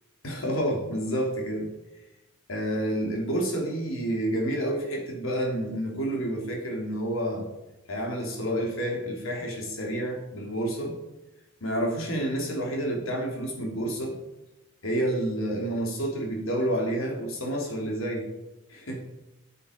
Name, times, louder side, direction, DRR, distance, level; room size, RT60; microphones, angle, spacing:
voice 1, 0.2-1.7 2.5-7.5 7.9-10.9 11.6-14.1 14.8-18.3 18.7-19.0, right 1 dB, 80° left, 0 dB, 3.1 m, -29 dB
9.5 x 8.5 x 5.2 m, 1.0 s
head